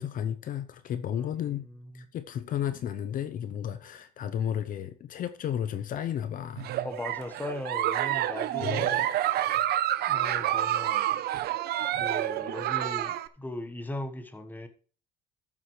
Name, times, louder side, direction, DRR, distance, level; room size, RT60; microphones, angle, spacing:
voice 1, 0.0-1.7 1.9-6.7 8.6-9.0, left 9 dB, 55° left, 0.6 m, -33 dB
voice 2, 1.1-2.1 6.8-9.1 10.1-11.1 12.0-14.7, left 1 dB, 10° left, 1.2 m, -39 dB
Giggle, 6.6-13.3, right 12 dB, 70° right, 0.7 m, -28 dB
13.5 x 7.4 x 3.2 m
cardioid pair, 110°, 17 cm